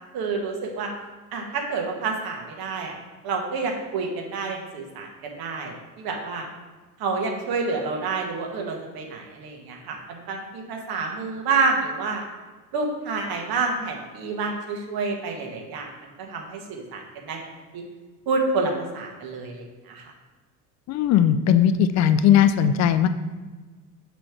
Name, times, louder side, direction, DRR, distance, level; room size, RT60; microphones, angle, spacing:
voice 1, 0.1-0.9 1.3-3.0 3.2-6.4 7.0-12.2 12.7-15.9 16.2-17.4 17.7-17.8 18.3-20.0, right 4 dB, 45° right, 1 dB, 1.5 m, -28 dB
voice 2, 20.9-23.1, left 9 dB, 35° left, 11 dB, 0.4 m, -18 dB
6.0 x 3.4 x 5.9 m, 1.3 s
hypercardioid pair, 75°, 50 cm